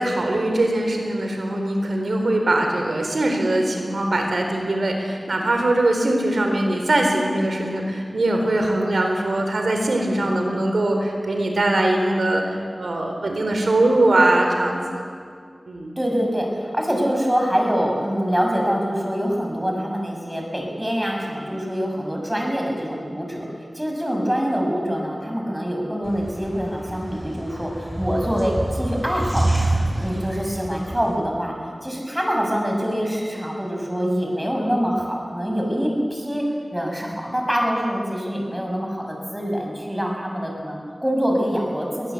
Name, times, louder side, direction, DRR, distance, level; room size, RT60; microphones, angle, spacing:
voice 1, 0.0-15.0 15.7-15.9, right 1 dB, 90° right, 3 dB, 3.9 m, -21 dB
voice 2, 10.0-10.3 16.0-23.5 23.7-31.5 31.8-36.4 36.7-42.1, equal, 10° right, 0 dB, 6.8 m, -25 dB
sound 1, 26.0-31.1, right 1 dB, 25° right, 6.5 m, -27 dB
23.5 x 18.5 x 8.3 m, 2.1 s
wide cardioid pair, 45°, 0 cm